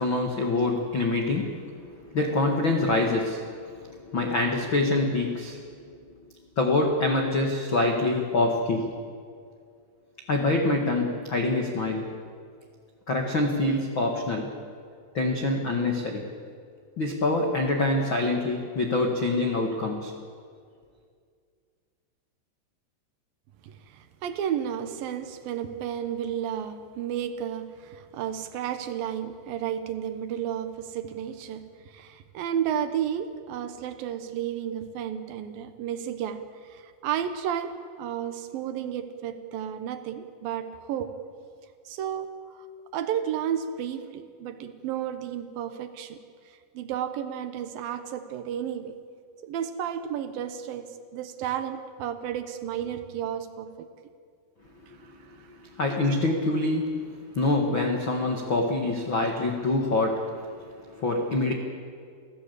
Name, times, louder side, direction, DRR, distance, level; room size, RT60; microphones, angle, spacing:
voice 1, 0.0-1.8 2.1-5.6 6.5-8.9 10.3-12.2 13.1-14.5 15.1-16.3 17.0-20.1 55.8-57.0 57.3-61.5, left 2 dB, 85° left, 1 dB, 1.0 m, -25 dB
voice 2, 23.6-41.2 41.9-42.7 42.9-46.2 46.5-49.0 49.4-53.9 56.0-56.1, right 9 dB, 75° right, 9 dB, 2.2 m, -32 dB
28.5 x 16.5 x 8.3 m, 2.1 s
omnidirectional pair, 5.6 m